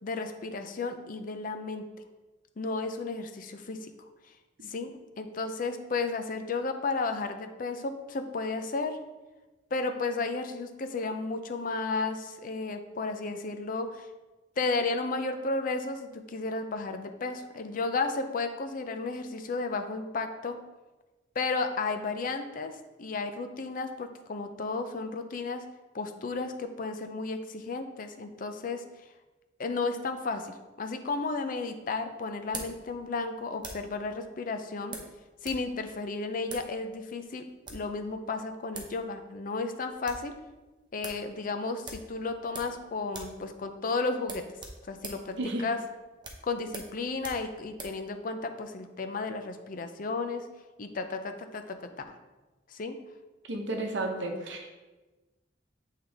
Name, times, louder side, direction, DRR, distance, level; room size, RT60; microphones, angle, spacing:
voice 1, 0.0-1.9 2.6-3.9 4.7-4.9 5.2-9.0 9.7-14.1 14.6-20.6 21.4-25.6 25.9-28.8 29.6-35.0 35.4-40.3 40.9-44.4 44.9-45.8 46.4-50.4 50.8-51.9 52.7-53.0, left 3 dB, 45° left, 7 dB, 0.5 m, -33 dB
sound 1, 31.1-34.0 34.9-35.7 35.9-36.0 36.4-36.7 37.4-37.9 38.5-38.6 38.7-39.0 39.3-39.4 39.7-40.3 40.6-40.7 41.0-41.2 41.8-42.8 43.1-43.4 43.7-43.8 44.2-48.0, right 3 dB, 25° right, 0.8 m, -43 dB
voice 2, 53.5-54.7, right 2 dB, 75° right, 3 dB, 0.9 m, -32 dB
7.9 x 3.7 x 3.4 m, 1.2 s
head